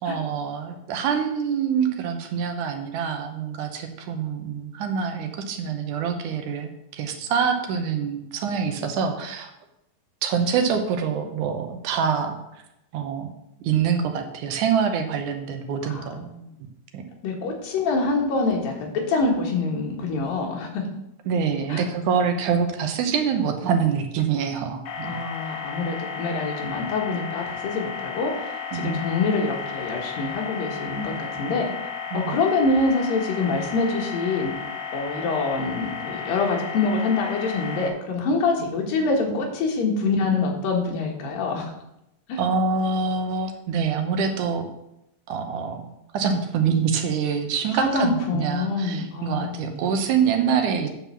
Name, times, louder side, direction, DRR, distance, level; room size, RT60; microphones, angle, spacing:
voice 1, 0.0-9.5 10.2-12.6 12.9-13.3 13.6-16.2 16.9-17.0 21.3-25.2 28.7-29.0 32.1-32.4 42.4-44.7 45.3-45.9 46.1-50.9, right 6 dB, 70° right, 5 dB, 2.2 m, -25 dB
voice 2, 15.8-16.5 17.2-20.8 21.7-21.9 25.0-31.7 32.1-34.5 34.9-41.7 42.3-42.4 47.8-49.8, left 3 dB, 85° left, 0 dB, 3.3 m, -25 dB
sound 1, 24.9-37.9, left 6 dB, 65° left, 1.8 m, -33 dB
9.2 x 4.3 x 6.9 m, 0.83 s
omnidirectional pair, 3.9 m